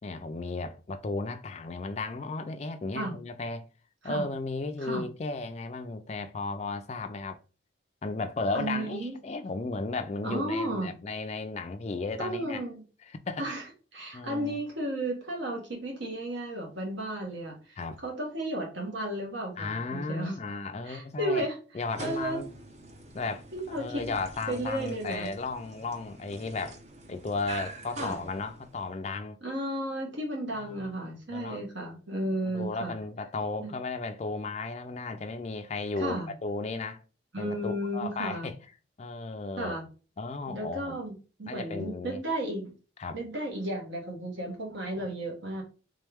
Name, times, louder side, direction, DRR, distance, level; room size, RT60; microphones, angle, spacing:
voice 1, 0.0-3.7 4.0-7.4 8.0-12.6 13.1-13.5 14.1-14.6 17.8-18.0 19.6-21.5 21.7-22.5 23.1-26.8 27.1-29.4 30.5-30.9 31.3-31.6 32.4-37.0 37.4-38.5 39.0-39.8 40.2-41.0 41.5-42.2 43.0-43.2 45.0-45.1, left 3 dB, 35° left, 0.4 m, -35 dB
voice 2, 8.5-9.1 10.2-10.9 12.2-12.8 13.4-13.6 13.9-20.4 20.8-21.6 22.0-22.4 23.5-24.0 24.5-25.3 28.0-28.2 29.4-32.9 33.6-33.7 36.0-36.3 37.3-38.5 39.6-39.9 40.5-42.7 43.1-45.6, right 1 dB, 70° right, 1.4 m, -33 dB
sound 1, 21.8-29.0, right 2 dB, 35° right, 0.6 m, -46 dB
3.6 x 3.1 x 3.4 m
head